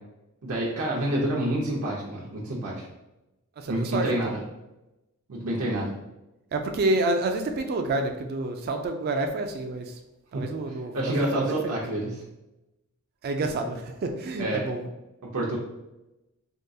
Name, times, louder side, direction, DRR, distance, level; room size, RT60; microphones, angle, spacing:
voice 1, 0.4-2.9 3.7-4.4 5.3-5.9 10.3-10.5 10.9-12.2 14.4-14.6 15.2-15.6, right 1 dB, 80° right, -4 dB, 0.6 m, -28 dB
voice 2, 3.6-4.4 6.5-9.9 10.3-11.8 13.2-14.9, right 2 dB, 45° right, 5 dB, 0.3 m, -29 dB
3.7 x 2.3 x 2.6 m, 0.97 s
head